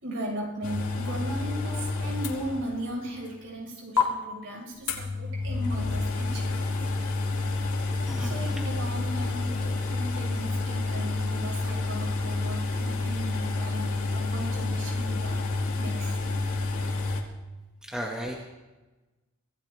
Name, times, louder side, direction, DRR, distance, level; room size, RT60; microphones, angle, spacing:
voice 1, 0.0-6.8 8.2-15.4 15.8-16.3, equal, 60° right, -3 dB, 6.1 m, -37 dB
sound 1, 0.6-2.9 3.3-3.4 4.0-4.1 4.9-17.2, left 3 dB, 90° left, 2.4 m, -29 dB
voice 2, 17.9-18.4, equal, 5° right, -2 dB, 1.8 m, -34 dB
25.0 x 16.0 x 3.5 m, 1.1 s
head